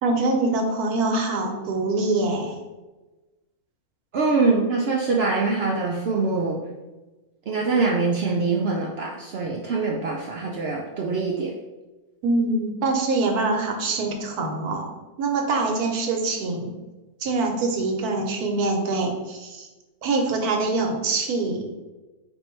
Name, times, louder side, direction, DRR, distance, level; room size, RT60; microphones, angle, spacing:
voice 1, 0.0-2.6 12.2-14.9 15.2-16.7 17.2-19.7 20.0-21.7, right 3 dB, 85° right, 2 dB, 1.3 m, -24 dB
voice 2, 4.1-6.6 7.5-11.5, right 3 dB, 70° right, -2 dB, 0.6 m, -24 dB
4.4 x 2.6 x 4.3 m, 1.1 s
omnidirectional pair, 1.6 m